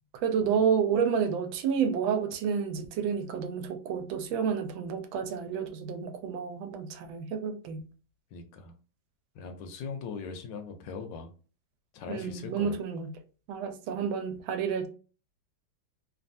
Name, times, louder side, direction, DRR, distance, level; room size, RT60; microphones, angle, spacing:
voice 1, 0.2-7.9 12.1-13.1 13.5-14.9, right 7 dB, 85° right, 1.3 m, -30 dB
voice 2, 8.3-8.8 9.3-11.3 11.9-12.8, left 5 dB, 75° left, 1.3 m, -40 dB
3.3 x 2.3 x 2.5 m
omnidirectional pair, 2.1 m